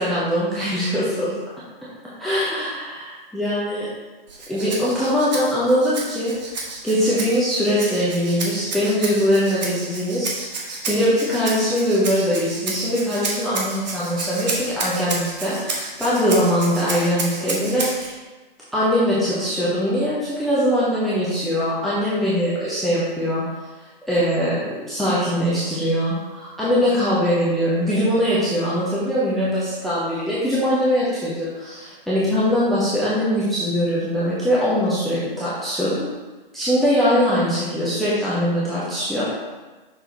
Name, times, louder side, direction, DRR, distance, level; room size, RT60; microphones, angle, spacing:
voice 1, 0.0-1.3 2.2-3.9 4.5-6.3 6.8-18.2 18.7-23.4 24.1-36.1 36.5-39.3, equal, ahead, -10 dB, 0.6 m, -22 dB
Rattle (instrument), 4.3-18.1, right 3 dB, 45° right, 1.2 m, -31 dB
6.1 x 4.4 x 3.9 m, 1.2 s
figure-of-eight pair, 125°, 29 cm